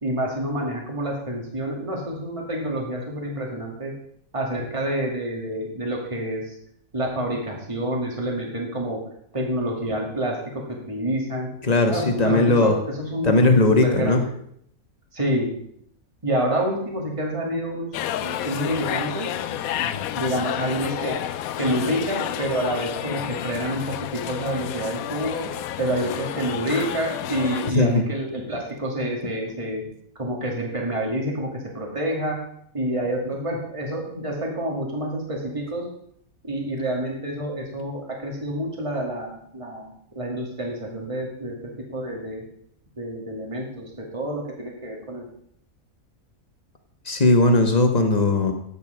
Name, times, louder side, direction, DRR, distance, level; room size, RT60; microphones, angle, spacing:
voice 1, 0.0-3.9 4.3-6.5 6.9-9.0 9.3-11.5 11.9-13.5 13.8-14.3 15.1-15.6 16.2-17.9 18.2-19.3 20.1-21.1 21.6-25.5 25.8-29.8 30.2-32.4 32.7-35.8 36.4-42.4 43.0-45.3, right 1 dB, 20° right, -1 dB, 2.2 m, -28 dB
voice 2, 11.6-12.8 13.2-14.2 19.7-20.1 27.7-28.0 47.0-48.5, left 2 dB, 30° left, 4 dB, 1.4 m, -18 dB
sound 1, 17.9-27.7, left 11 dB, 90° left, 1.1 m, -30 dB
10.5 x 8.6 x 5.0 m, 0.68 s
omnidirectional pair, 1.5 m